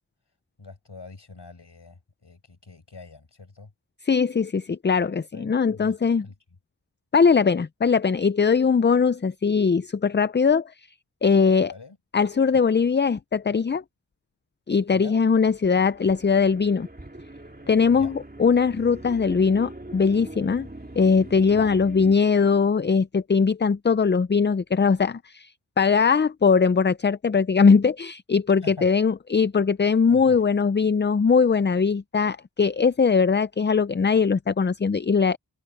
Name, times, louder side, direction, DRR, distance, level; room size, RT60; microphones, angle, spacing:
voice 1, 0.6-3.7 5.3-5.9 6.2-6.3 11.7-12.0 14.9-15.2 17.9-18.1 21.5-21.7 28.6-28.9 30.1-30.4, left 3 dB, 75° left, 5.8 m, -44 dB
voice 2, 4.0-6.3 7.1-10.7 11.2-11.7 12.1-13.8 14.7-16.9 17.7-20.7 21.0-35.4, left 5 dB, 25° left, 0.4 m, -21 dB
sound 1, 15.5-22.2, right 1 dB, 20° right, 2.6 m, -42 dB
wide cardioid pair, 60°, 42 cm